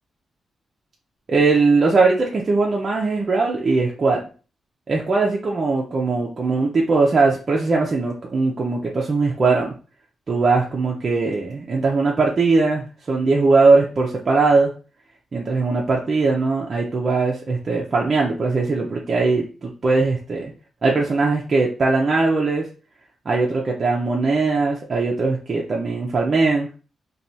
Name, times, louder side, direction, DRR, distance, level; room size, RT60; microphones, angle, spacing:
voice 1, 1.3-4.2 4.9-9.7 10.3-14.7 15.3-20.5 20.8-22.7 23.3-26.7, right 3 dB, 40° right, -2 dB, 0.5 m, -20 dB
3.1 x 2.3 x 2.6 m, 0.35 s
cardioid pair, 120°, 0 cm